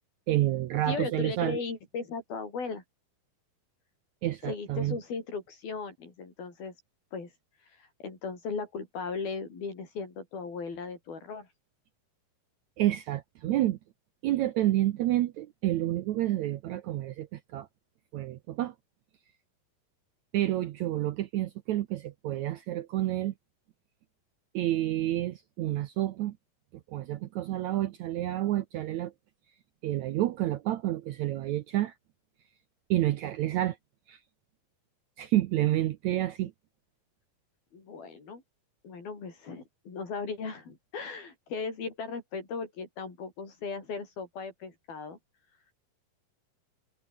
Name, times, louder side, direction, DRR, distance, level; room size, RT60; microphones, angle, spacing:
voice 1, 0.3-1.6 4.2-5.0 12.8-13.8 14.2-17.7 18.1-18.7 20.3-23.3 24.5-26.4 26.9-29.1 29.8-31.9 32.9-33.8 34.1-34.2 35.2-36.5, right 14 dB, 75° right, 1.7 m, -29 dB
voice 2, 0.9-2.8 4.4-6.7 7.1-7.3 7.8-11.5 37.7-38.4 38.8-45.2, left 4 dB, 80° left, 8.2 m, -37 dB
omnidirectional pair, 4.2 m